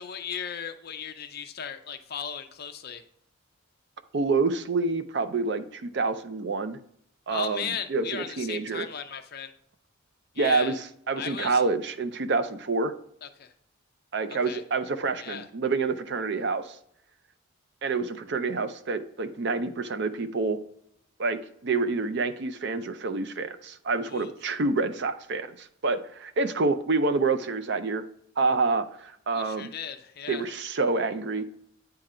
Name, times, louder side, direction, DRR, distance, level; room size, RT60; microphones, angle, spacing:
voice 1, 0.0-3.0 7.3-9.5 10.3-10.7 11.2-11.6 13.2-13.5 14.4-14.6 15.2-15.5 24.0-24.3 29.3-30.5, left 7 dB, 50° left, 8 dB, 0.6 m, -36 dB
voice 2, 4.1-6.8 7.3-8.9 10.4-12.9 14.1-16.8 17.8-20.6 21.2-28.0 28.4-29.7 30.3-31.4, right 3 dB, 55° right, 10 dB, 0.5 m, -27 dB
9.0 x 3.8 x 4.3 m, 0.72 s
head